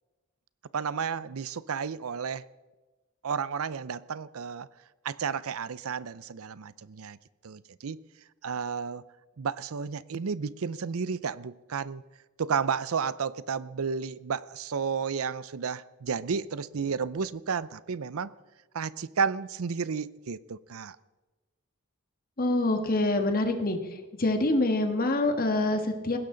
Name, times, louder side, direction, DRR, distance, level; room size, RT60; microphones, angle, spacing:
voice 1, 0.7-2.4 3.2-4.7 5.0-7.2 7.4-8.0 8.4-9.0 9.4-12.0 12.4-18.3 18.7-21.0, right 6 dB, 75° right, 0.6 m, -32 dB
voice 2, 22.4-23.8 24.2-26.2, left 2 dB, 40° left, 1.7 m, -25 dB
20.0 x 16.0 x 3.9 m
head